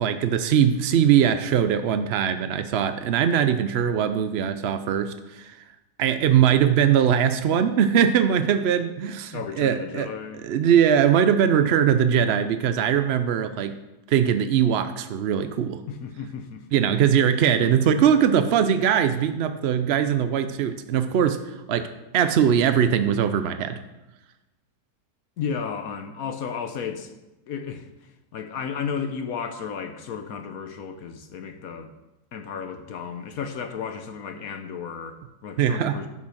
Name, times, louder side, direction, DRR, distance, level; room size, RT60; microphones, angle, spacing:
voice 1, 0.0-5.6 6.0-10.1 10.4-13.7 14.1-15.8 16.7-21.9 22.1-23.8 35.6-36.0, right 8 dB, 75° right, 9 dB, 0.5 m, -21 dB
voice 2, 9.3-10.7 15.9-16.8 25.4-27.1 27.5-31.9 32.3-36.1, left 6 dB, 65° left, 7 dB, 1.1 m, -34 dB
11.0 x 6.0 x 6.3 m, 1.0 s
omnidirectional pair, 1.8 m